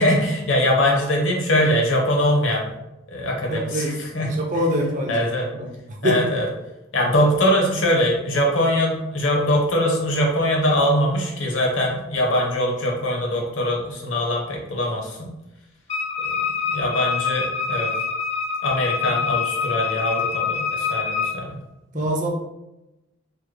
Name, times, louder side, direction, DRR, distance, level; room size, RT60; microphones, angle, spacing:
voice 1, 0.0-2.7 3.1-4.4 5.1-5.5 6.0-6.5 6.9-15.3 16.3-16.4 16.7-17.9 18.6-21.6 21.9-22.0, left 1 dB, 70° left, 0 dB, 0.8 m, -22 dB
voice 2, 3.5-4.0 4.3-5.2 5.5-6.3 19.1-19.2 21.9-22.3, equal, 40° right, 0 dB, 0.4 m, -25 dB
Wind instrument woodwind instrument, 15.9-21.4, left 6 dB, 30° left, 0.5 m, -25 dB
3.3 x 2.1 x 3.2 m, 0.94 s
head